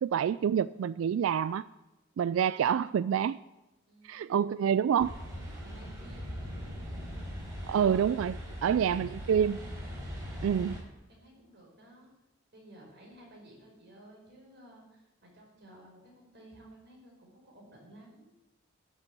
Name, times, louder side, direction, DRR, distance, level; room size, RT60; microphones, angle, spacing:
voice 1, 0.0-1.6 2.2-3.4 4.0-5.1 7.7-9.6 10.4-10.8, right 8 dB, 80° right, 16 dB, 0.3 m, -27 dB
voice 2, 3.9-4.4 5.4-6.4 8.4-9.5 11.1-12.1 12.5-18.3, right 1 dB, 55° right, -2 dB, 5.0 m, -55 dB
sound 1, 5.0-10.8, equal, 20° right, 4.6 m, -40 dB
12.0 x 6.9 x 8.2 m, 1.0 s
head